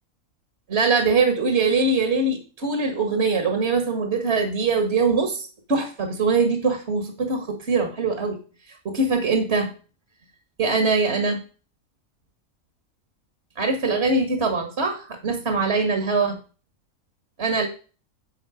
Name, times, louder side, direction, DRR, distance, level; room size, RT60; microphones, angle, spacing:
voice 1, 0.7-8.4 8.9-9.7 10.6-11.4 13.6-16.4 17.4-17.7, right 4 dB, 55° right, 5 dB, 1.9 m, -22 dB
11.5 x 7.7 x 5.0 m, 0.38 s
omnidirectional pair, 1.4 m